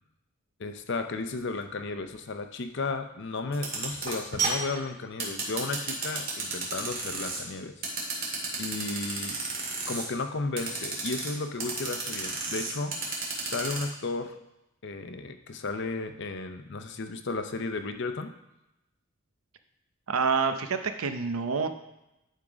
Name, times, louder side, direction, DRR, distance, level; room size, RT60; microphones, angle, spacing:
voice 1, 0.6-7.7 8.6-9.4 9.9-13.0 13.4-14.4 14.8-18.3, left 3 dB, 55° left, 8 dB, 0.6 m, -34 dB
sound 1, 3.5-7.4 7.8-10.0 10.6-11.3 11.6-13.8, right 4 dB, 45° right, 2.0 m, -32 dB
voice 2, 20.1-21.7, right 5 dB, 85° right, 8 dB, 0.7 m, -27 dB
11.0 x 3.7 x 4.9 m, 0.92 s
head